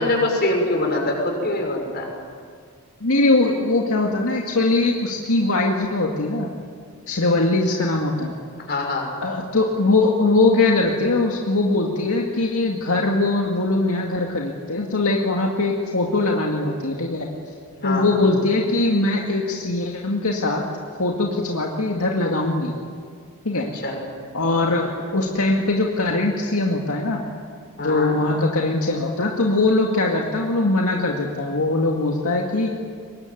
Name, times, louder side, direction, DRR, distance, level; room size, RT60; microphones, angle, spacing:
voice 1, 0.0-2.1 8.7-9.1 17.8-18.2 23.7-24.1 27.8-28.2, left 2 dB, 45° left, 1 dB, 6.3 m, -24 dB
voice 2, 3.0-6.5 7.1-8.3 9.2-17.3 17.8-20.6 21.0-22.7 23.4-23.7 24.3-27.2 27.8-32.7, left 2 dB, 75° left, 0 dB, 2.2 m, -21 dB
23.5 x 21.0 x 9.4 m, 2.1 s
head